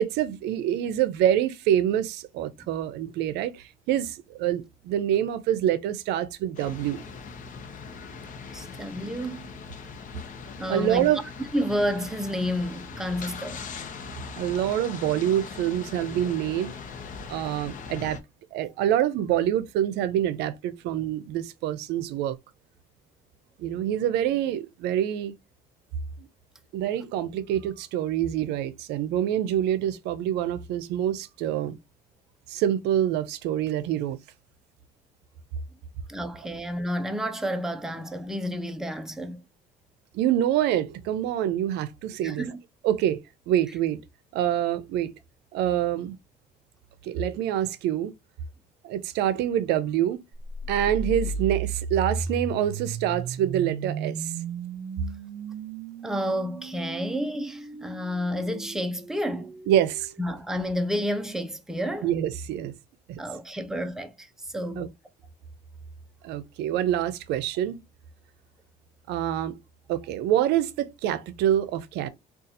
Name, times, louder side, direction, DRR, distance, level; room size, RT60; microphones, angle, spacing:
voice 1, 0.0-7.0 10.7-11.2 14.3-16.7 17.3-18.2 18.5-22.4 23.6-25.3 26.7-31.8 32.5-34.2 40.1-42.5 42.8-44.0 44.3-45.1 45.5-46.2 47.0-48.1 48.8-50.2 50.7-54.3 59.7-60.1 62.0-62.7 63.1-63.2 64.8-64.9 66.2-67.8 69.1-69.6 69.9-72.1, right 11 dB, 85° right, 0.5 m, -26 dB
sound 1, 6.5-18.2, left 5 dB, 50° left, 0.8 m, -40 dB
voice 2, 8.5-9.5 10.6-11.1 11.5-13.7 36.1-39.4 42.2-42.6 56.0-59.5 60.2-62.1 63.2-64.9, equal, 5° right, 0.5 m, -30 dB
sound 2, 50.4-60.4, right 4 dB, 55° right, 0.8 m, -35 dB
3.8 x 2.4 x 2.7 m
cardioid pair, 110°, 17 cm